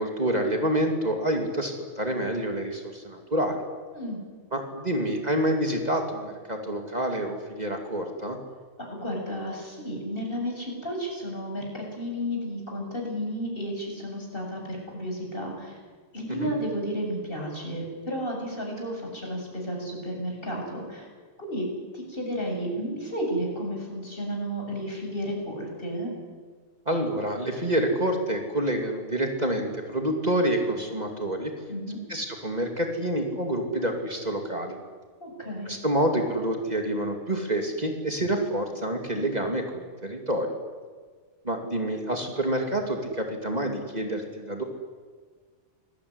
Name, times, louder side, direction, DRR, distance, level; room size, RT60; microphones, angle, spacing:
voice 1, 0.0-3.6 4.5-8.4 16.3-16.5 26.9-31.5 32.1-34.8 35.7-40.5 41.4-44.6, right 1 dB, 35° right, 3 dB, 3.0 m, -27 dB
voice 2, 8.8-15.8 16.1-21.1 21.4-21.6 21.9-26.1 31.7-32.0 35.2-35.7, equal, 45° left, 0 dB, 7.6 m, -32 dB
28.0 x 20.5 x 9.9 m, 1.5 s
omnidirectional pair, 1.3 m